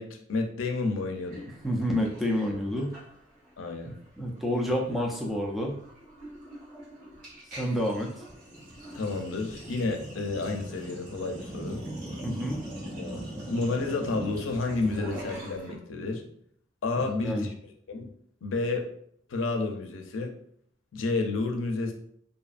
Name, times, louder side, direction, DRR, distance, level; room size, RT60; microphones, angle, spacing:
voice 1, 0.0-1.4 3.6-3.9 4.9-5.0 9.0-11.8 12.9-16.2 16.8-17.5 17.9-18.1 18.4-18.9 19.3-20.3 20.9-21.9, left 3 dB, 90° left, 4 dB, 0.5 m, -30 dB
Sink (filling or washing), 1.3-3.5 3.8-4.1 4.3-15.8, right 1 dB, 45° right, 1.2 m, -41 dB
voice 2, 1.6-2.9 4.2-5.8 7.6-8.1 12.2-12.6 17.2-17.5, equal, ahead, -1 dB, 0.3 m, -28 dB
2.6 x 2.4 x 2.4 m, 0.64 s
head